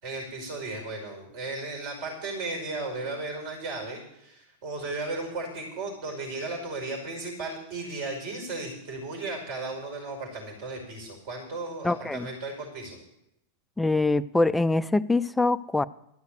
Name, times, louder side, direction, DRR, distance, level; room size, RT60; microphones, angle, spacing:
voice 1, 0.0-13.0, right 2 dB, 50° right, 2 dB, 5.3 m, -35 dB
voice 2, 11.8-12.3 13.8-15.8, left 2 dB, 5° left, 15 dB, 0.5 m, -24 dB
13.5 x 6.4 x 8.3 m, 0.82 s
figure-of-eight pair, 90°, 0 cm